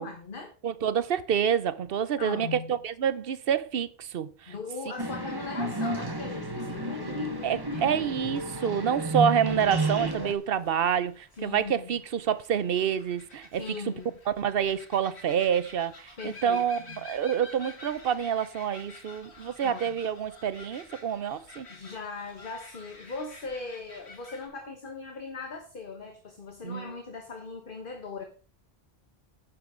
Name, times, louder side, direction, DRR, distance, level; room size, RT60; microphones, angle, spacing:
voice 1, 0.0-0.5 2.2-2.7 4.5-8.0 11.4-11.9 13.6-14.2 16.2-17.0 19.6-19.8 21.7-28.2, left 4 dB, 55° left, 1.5 m, -39 dB
voice 2, 0.6-4.5 7.4-13.6 14.3-21.7 26.6-26.9, right 8 dB, 65° right, 0.9 m, -28 dB
sound 1, 5.0-10.3, right 2 dB, 20° right, 1.2 m, -31 dB
sound 2, 8.0-24.5, left 2 dB, 85° left, 2.5 m, -50 dB
10.5 x 8.8 x 3.8 m
omnidirectional pair, 1.1 m